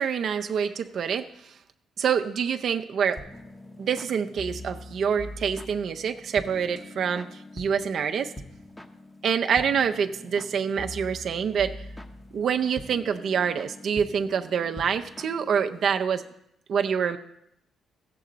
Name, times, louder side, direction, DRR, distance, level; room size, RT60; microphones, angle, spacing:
voice 1, 0.0-1.6 2.0-3.2 3.8-8.3 9.2-11.7 12.3-16.2 16.7-17.2, right 7 dB, 60° right, 6 dB, 0.5 m, -26 dB
sound 1, 3.2-16.0, left 1 dB, 10° left, 0.9 m, -43 dB
15.0 x 7.5 x 3.9 m, 0.80 s
cardioid pair, 90°, 0 cm